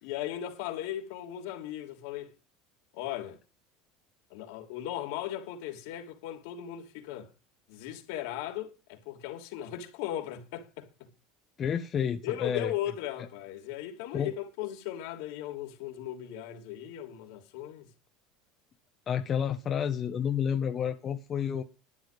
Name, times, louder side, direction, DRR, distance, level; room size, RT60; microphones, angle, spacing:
voice 1, 0.0-2.3 2.9-3.4 4.3-7.3 7.7-11.1 12.2-17.9, left 12 dB, 75° left, 3.1 m, -37 dB
voice 2, 11.6-12.7 14.1-14.3 19.1-21.6, left 8 dB, 35° left, 1.3 m, -30 dB
12.5 x 9.8 x 5.2 m
supercardioid pair, 105°, 0 cm